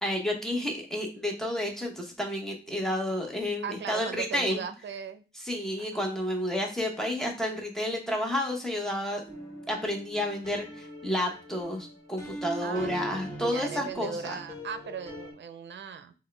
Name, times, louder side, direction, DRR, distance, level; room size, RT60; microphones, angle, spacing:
voice 1, 0.0-4.6 5.4-9.2 9.7-14.3, left 1 dB, ahead, 1 dB, 0.9 m, -31 dB
voice 2, 3.6-5.2 5.8-6.0 12.6-13.0 13.4-16.1, right 7 dB, 75° right, 11 dB, 0.5 m, -38 dB
sound 1, 9.3-15.3, equal, 20° left, 1.5 m, -41 dB
6.1 x 2.1 x 3.3 m, 0.35 s
wide cardioid pair, 150°, 19 cm